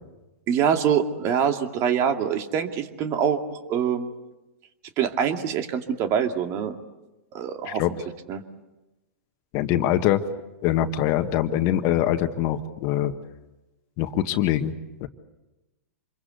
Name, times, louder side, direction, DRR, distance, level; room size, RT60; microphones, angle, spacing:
voice 1, 0.5-4.1 5.0-6.8 7.3-7.8 8.3-8.4, right 8 dB, 40° right, 6 dB, 2.4 m, -24 dB
voice 2, 9.5-10.2 10.6-13.1 14.0-14.7 15.0-15.1, left 12 dB, 45° left, 8 dB, 1.6 m, -23 dB
27.0 x 22.5 x 8.2 m, 1.0 s
hypercardioid pair, 120°, 8 cm